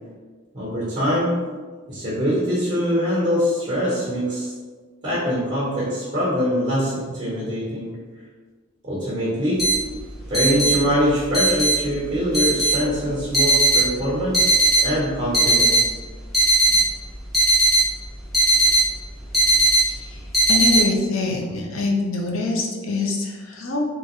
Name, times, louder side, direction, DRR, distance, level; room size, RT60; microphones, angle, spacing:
voice 1, 0.5-1.4 1.9-4.5 5.0-7.9 8.8-9.7 10.3-15.9, equal, 20° right, -8 dB, 1.0 m, -23 dB
sound 1, 9.6-20.8, right 2 dB, ahead, 0.8 m, -18 dB
voice 2, 20.5-23.8, left 3 dB, 75° left, 0 dB, 0.6 m, -24 dB
3.5 x 2.9 x 3.1 m, 1.5 s
head